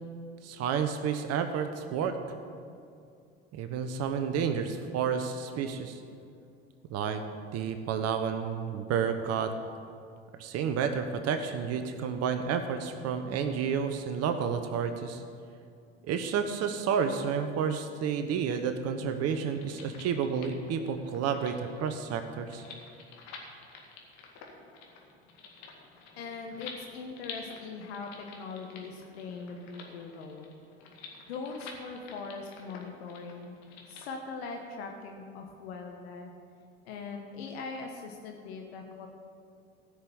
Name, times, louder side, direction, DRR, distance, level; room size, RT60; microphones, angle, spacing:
voice 1, 0.4-2.2 3.5-6.0 6.9-7.2 7.5-9.5 10.4-15.2 16.1-22.6, right 7 dB, 50° right, 8 dB, 1.0 m, -30 dB
sound 1, 19.3-34.1, left 5 dB, 55° left, 2.2 m, -49 dB
voice 2, 26.2-30.5 31.3-33.6 33.9-36.3 36.8-39.1, left 4 dB, 75° left, 2 dB, 1.2 m, -41 dB
15.0 x 6.5 x 7.0 m, 2.4 s
hypercardioid pair, 70°, 32 cm